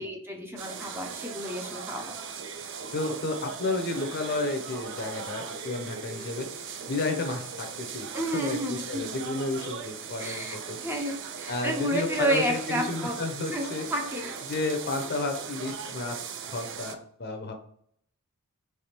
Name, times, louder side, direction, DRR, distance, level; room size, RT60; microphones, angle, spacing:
voice 1, 0.0-2.1 8.1-9.1 10.2-13.2 13.5-14.3, right 1 dB, 10° right, 1 dB, 0.7 m, -31 dB
sound 1, 0.6-17.0, right 6 dB, 55° right, 0.5 m, -39 dB
voice 2, 2.9-6.5 6.9-10.8 11.5-13.9 14.5-16.2 16.5-17.5, left 2 dB, 45° left, 4 dB, 0.7 m, -32 dB
3.4 x 3.2 x 4.3 m, 0.64 s
head